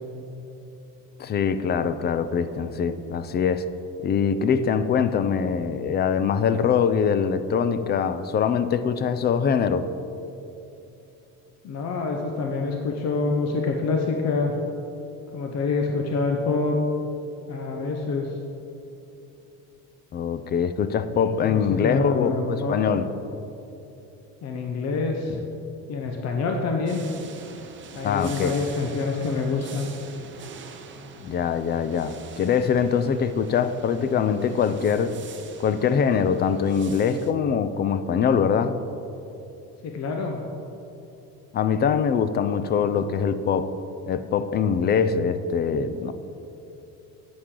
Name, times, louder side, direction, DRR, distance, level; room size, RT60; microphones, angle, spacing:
voice 1, 1.2-3.7 4.0-9.9 20.1-23.1 28.0-28.5 31.2-35.2 35.6-38.8 41.5-43.7 44.1-46.1, left 6 dB, 30° left, 12 dB, 0.3 m, -23 dB
voice 2, 11.6-14.5 15.3-16.8 17.5-18.4 21.4-22.8 24.4-25.4 25.9-27.0 27.9-29.9 39.8-40.4, left 4 dB, 45° left, 2 dB, 0.8 m, -26 dB
sound 1, 26.9-37.3, right 5 dB, 30° right, 0.8 m, -44 dB
11.0 x 8.7 x 3.8 m, 2.9 s
cardioid pair, 135°, 36 cm